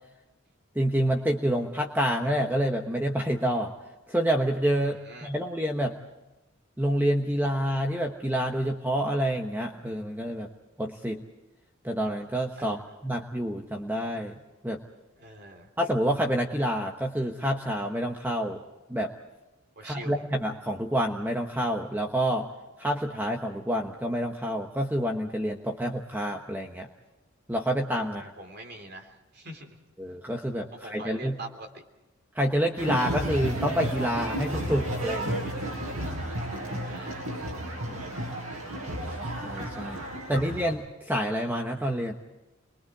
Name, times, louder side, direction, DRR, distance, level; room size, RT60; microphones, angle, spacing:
voice 1, 0.7-3.7 4.1-6.0 6.8-10.5 10.8-11.2 11.8-12.8 13.0-14.3 14.6-14.8 15.8-18.6 18.9-19.1 19.8-22.5 22.8-26.9 27.5-28.3 30.0-31.4 32.3-35.4 37.9-38.0 39.1-42.1, equal, 10° right, 2 dB, 1.1 m, -28 dB
voice 2, 4.8-5.3 12.6-13.0 15.2-15.7 19.8-20.2 28.0-29.8 30.7-31.8 36.5-37.2 40.2-40.4, right 2 dB, 50° right, 3 dB, 3.4 m, -44 dB
sound 1, 32.8-40.7, right 1 dB, 85° right, 7.0 m, -32 dB
29.0 x 22.0 x 4.9 m, 1.0 s
head